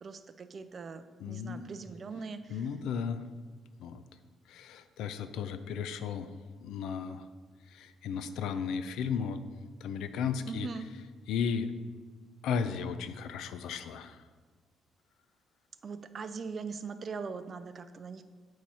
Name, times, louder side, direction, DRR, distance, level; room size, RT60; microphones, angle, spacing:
voice 1, 0.0-2.6 10.5-10.8 15.8-18.2, right 5 dB, 40° right, 11 dB, 0.4 m, -41 dB
voice 2, 1.2-1.6 2.5-3.2 3.8-4.0 4.5-6.3 6.6-7.2 7.7-9.4 9.8-10.7 11.3-11.7 12.4-14.2, left 6 dB, 85° left, 11 dB, 0.4 m, -34 dB
8.5 x 3.2 x 5.5 m, 1.4 s
cardioid pair, 120°, 0 cm